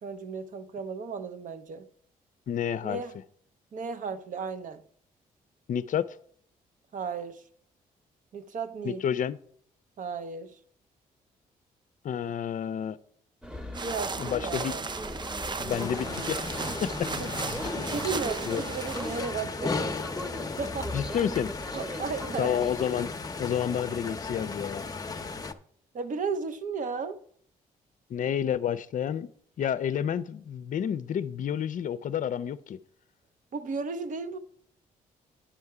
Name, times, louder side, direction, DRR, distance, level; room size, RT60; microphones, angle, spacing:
voice 1, 0.0-1.9 2.8-3.2 3.7-4.8 6.9-7.4 8.3-9.0 10.0-10.6 13.8-14.8 17.2-17.3 17.7-20.0 20.4-20.9 21.7-22.6 25.9-27.2 33.5-34.4, right 5 dB, 60° right, 0.8 m, -34 dB
voice 2, 2.5-3.0 5.7-6.2 8.8-9.4 12.0-13.0 14.2-14.7 15.6-16.5 16.8-17.6 18.5-18.6 20.9-21.5 22.4-23.1 23.4-24.8 28.1-29.3 29.6-32.8, left 9 dB, 55° left, 0.5 m, -30 dB
sound 1, 13.4-23.0, equal, 5° right, 1.0 m, -39 dB
sound 2, 13.7-19.2, right 4 dB, 30° right, 0.5 m, -36 dB
sound 3, 15.7-25.5, left 4 dB, 25° left, 0.7 m, -36 dB
10.0 x 5.5 x 4.8 m
cardioid pair, 70°, 15 cm